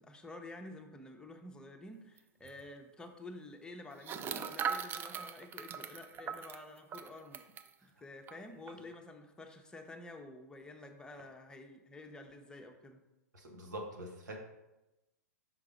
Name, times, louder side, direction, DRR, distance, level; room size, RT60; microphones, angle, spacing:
voice 1, 0.0-7.4 7.8-13.0, left 2 dB, 10° left, 3 dB, 0.7 m, -50 dB
sound 1, 2.2-2.3 2.4-2.6 4.0-7.7 8.3-8.4 8.7-8.9, right 7 dB, 25° right, 0.4 m, -40 dB
voice 2, 13.3-14.4, right 1 dB, 80° right, 1 dB, 1.4 m, -44 dB
5.8 x 3.8 x 5.0 m, 0.98 s
hypercardioid pair, 110°, 9 cm